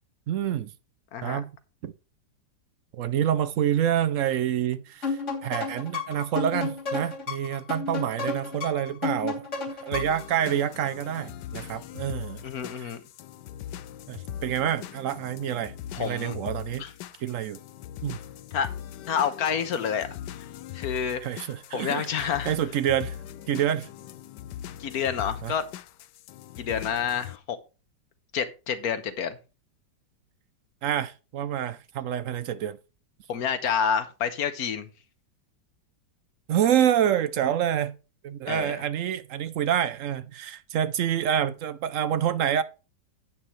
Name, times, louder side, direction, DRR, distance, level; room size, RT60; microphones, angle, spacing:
voice 1, 0.3-0.7 1.2-1.5 1.8-1.9 2.9-9.5 9.8-12.4 12.8-12.9 14.1-16.9 17.2-17.6 18.0-18.2 21.2-23.2 23.5-23.9 25.4-25.5 30.8-32.8 36.5-38.0 38.2-42.6, right 10 dB, 75° right, 0.7 m, -27 dB
sound 1, 5.0-10.3, left 4 dB, 40° left, 3.1 m, -32 dB
sound 2, 9.9-27.4, left 11 dB, 75° left, 1.2 m, -41 dB
voice 2, 12.4-13.0 15.9-16.4 16.8-16.9 18.5-18.7 19.1-20.1 20.7-21.2 21.7-22.5 24.8-25.7 26.6-27.6 28.3-29.4 33.3-34.9 38.5-38.8, left 7 dB, 60° left, 1.4 m, -28 dB
10.5 x 8.7 x 3.2 m
omnidirectional pair, 1.9 m